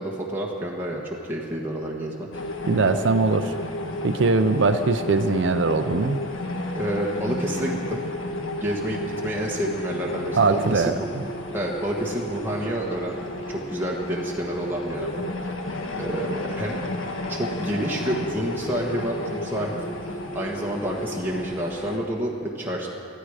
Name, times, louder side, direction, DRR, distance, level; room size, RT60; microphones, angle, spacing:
voice 1, 0.0-2.3 6.7-8.0 8.6-11.1 11.5-13.2 13.5-15.6 16.0-16.8 17.3-22.9, right 1 dB, 10° right, -3 dB, 1.5 m, -29 dB
sound 1, 2.3-22.0, left 1 dB, 70° left, 1.5 m, -32 dB
voice 2, 2.7-3.5 4.0-6.2 10.4-11.2, right 3 dB, 60° right, 10 dB, 0.6 m, -21 dB
20.5 x 13.5 x 5.0 m, 2.5 s
head